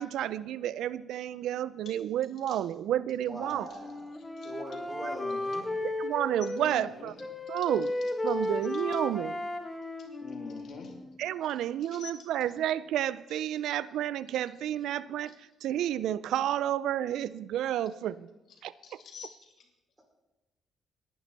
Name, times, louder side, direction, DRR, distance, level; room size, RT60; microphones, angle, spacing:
voice 1, 0.0-3.7 5.0-5.1 5.8-7.1 7.5-7.9 8.2-9.4 11.2-18.3 18.6-19.0, right 11 dB, 80° right, 18 dB, 0.3 m, -31 dB
voice 2, 3.2-4.1 4.4-5.4, right 1 dB, 20° right, 0 dB, 4.7 m, -41 dB
Wind instrument woodwind instrument, 3.3-6.9 7.2-11.2, left 1 dB, 15° left, 1.5 m, -35 dB
voice 3, 5.1-5.6 6.6-7.1 10.2-10.9 11.9-12.3 18.8-19.4, left 6 dB, 65° left, 2 dB, 2.7 m, -45 dB
18.5 x 10.5 x 4.1 m, 1.0 s
cardioid pair, 90°, 0 cm